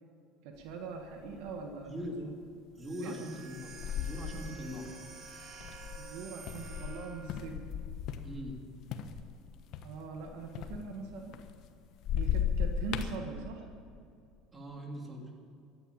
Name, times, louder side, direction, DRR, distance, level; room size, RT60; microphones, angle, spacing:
voice 1, 0.4-1.9 2.2-2.3 3.0-3.2 6.0-7.7 9.8-11.4 12.2-13.7, right 5 dB, 75° right, 4 dB, 1.5 m, -42 dB
sound 1, 0.7-0.8 1.2-1.7 2.2-2.4 3.3-8.6 8.9-11.7 12.0-13.1, left 8 dB, 60° left, 1.1 m, -36 dB
voice 2, 1.9-2.2 2.8-4.9 8.2-8.6 14.5-15.3, equal, 20° right, 0 dB, 3.5 m, -41 dB
sound 2, 2.8-7.5, right 5 dB, 45° right, 2.3 m, -50 dB
14.5 x 10.5 x 8.8 m, 2.5 s
supercardioid pair, 105°, 0 cm